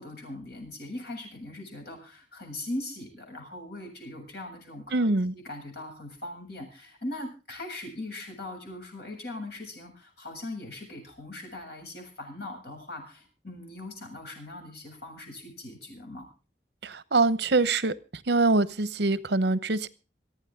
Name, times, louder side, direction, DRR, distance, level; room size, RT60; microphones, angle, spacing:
voice 1, 0.0-16.3, left 1 dB, 65° left, 3 dB, 7.5 m, -40 dB
voice 2, 4.9-5.3 16.8-17.9 18.3-19.9, right 3 dB, 65° right, 16 dB, 0.9 m, -24 dB
27.0 x 9.3 x 3.7 m, 0.34 s
head